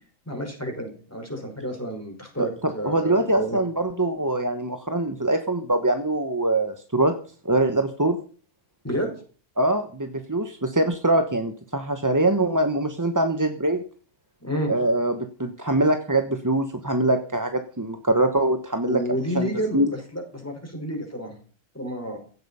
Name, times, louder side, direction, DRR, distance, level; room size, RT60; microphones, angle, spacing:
voice 1, 0.3-3.6 8.8-9.1 14.4-14.7 18.9-21.3 21.7-22.2, equal, 10° left, 2 dB, 5.3 m, -30 dB
voice 2, 2.4-7.1 7.4-8.2 9.6-13.8 14.7-19.0 19.3-19.9, right 1 dB, 15° right, 7 dB, 1.0 m, -23 dB
16.5 x 12.5 x 5.6 m, 0.41 s
omnidirectional pair, 1.6 m